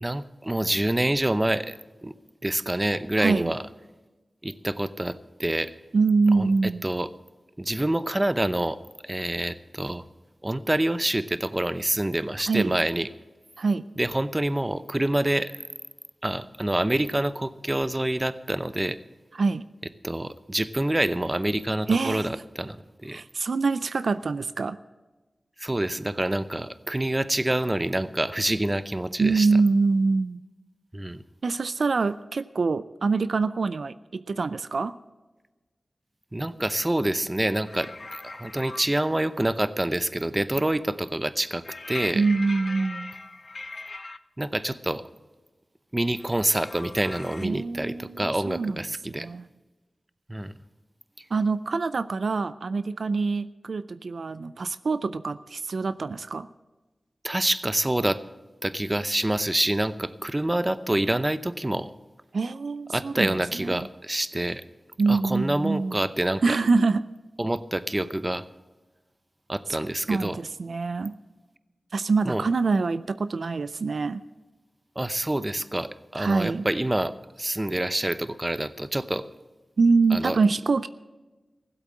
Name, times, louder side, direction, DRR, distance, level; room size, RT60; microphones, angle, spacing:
voice 1, 0.0-2.1 2.4-3.6 4.4-5.7 6.3-6.5 6.8-7.1 7.6-10.0 10.4-13.1 14.0-15.5 16.2-19.0 20.0-22.8 23.0-23.2 25.6-29.5 30.9-31.2 36.3-42.3 44.4-45.0 45.9-49.3 50.3-50.5 51.2-51.3 57.2-58.2 58.6-61.9 62.9-64.6 65.1-66.6 67.4-68.5 69.5-70.4 72.2-72.4 75.0-79.3 80.1-80.4, right 1 dB, 25° right, 14 dB, 0.7 m, -27 dB
voice 2, 3.2-3.5 5.9-6.8 12.5-12.8 13.6-13.8 19.3-19.6 21.9-22.3 23.1-24.8 29.2-30.4 31.4-34.9 42.1-43.1 47.4-48.8 49.1-49.5 51.3-56.5 62.3-63.9 65.0-66.0 66.4-67.0 69.7-69.8 70.1-71.1 71.9-74.2 76.2-76.7 79.8-80.9, right 4 dB, 85° right, 14 dB, 0.4 m, -25 dB
sound 1, 37.7-38.9 41.6-44.2 46.2-47.5, left 3 dB, 60° left, 0.6 m, -40 dB
15.5 x 8.2 x 7.5 m, 1.2 s
cardioid pair, 50°, 0 cm